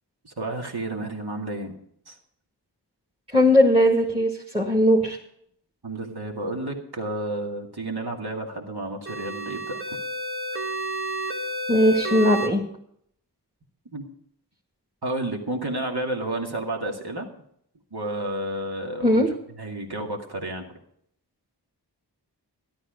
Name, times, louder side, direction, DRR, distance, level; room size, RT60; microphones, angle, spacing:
voice 1, 0.2-1.8 2.1-2.2 5.8-9.8 13.9-14.0 15.0-17.3 17.9-19.3 19.5-20.7, right 1 dB, 65° right, 1 dB, 2.3 m, -31 dB
voice 2, 3.3-5.2 11.7-12.6 19.0-19.3, equal, 15° right, -1 dB, 2.0 m, -19 dB
sound 1, 9.1-12.5, right 1 dB, 30° right, 1.4 m, -30 dB
13.5 x 11.5 x 5.1 m, 0.69 s
wide cardioid pair, 40°, 41 cm